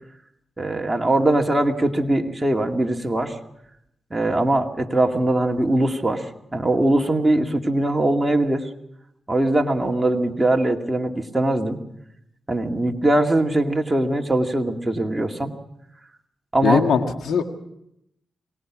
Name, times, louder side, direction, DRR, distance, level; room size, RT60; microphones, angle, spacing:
voice 1, 0.6-3.4 4.1-8.7 9.3-11.8 12.5-15.5 16.5-16.8, right 1 dB, 15° right, 2 dB, 2.3 m, -21 dB
voice 2, 16.6-17.4, left 6 dB, 85° left, 5 dB, 1.9 m, -20 dB
23.5 x 19.0 x 6.3 m, 0.79 s
cardioid pair, 65°, 0 cm